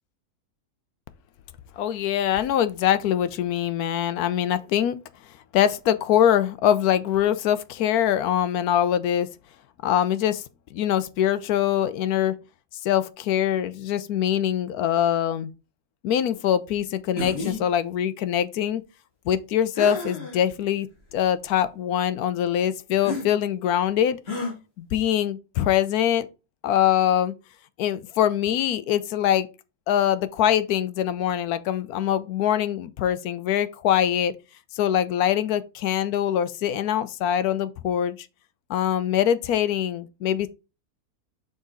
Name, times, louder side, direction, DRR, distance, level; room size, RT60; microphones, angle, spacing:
voice 1, 1.8-5.0 5.5-9.3 9.8-10.4 10.7-12.3 12.8-15.5 16.0-18.8 19.3-20.9 21.1-24.2 24.8-26.3 26.6-27.3 27.8-29.5 29.9-34.3 34.7-38.2 38.7-40.5, left 10 dB, 75° left, 1.1 m, -23 dB
sound 1, 17.2-17.6 19.8-20.4 21.1-21.2 23.0-23.3 24.3-24.5, left 2 dB, 40° left, 2.4 m, -30 dB
6.3 x 4.0 x 3.8 m
omnidirectional pair, 1.6 m